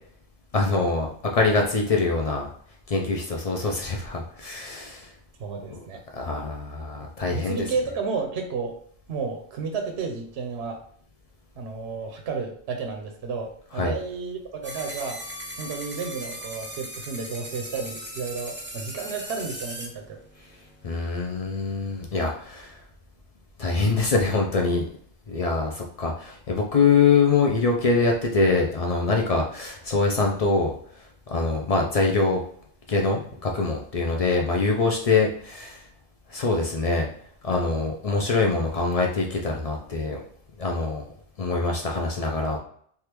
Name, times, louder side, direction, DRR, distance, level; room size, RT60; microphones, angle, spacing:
voice 1, 0.5-2.5 2.9-5.1 5.7-5.8 6.1-7.6 13.7-14.0 20.8-22.8 23.6-24.9 25.3-30.7 31.3-32.4 32.9-35.8 36.3-37.1 37.4-40.2 40.6-41.0 41.4-42.6, left 4 dB, 60° left, 0 dB, 0.4 m, -24 dB
voice 2, 5.4-6.0 7.3-8.8 9.1-10.8 11.6-15.2 15.6-20.2, right 4 dB, 70° right, 3 dB, 0.8 m, -32 dB
sound 1, 14.6-19.9, right 1 dB, 15° right, 0.4 m, -37 dB
3.4 x 2.4 x 2.9 m, 0.62 s
omnidirectional pair, 1.2 m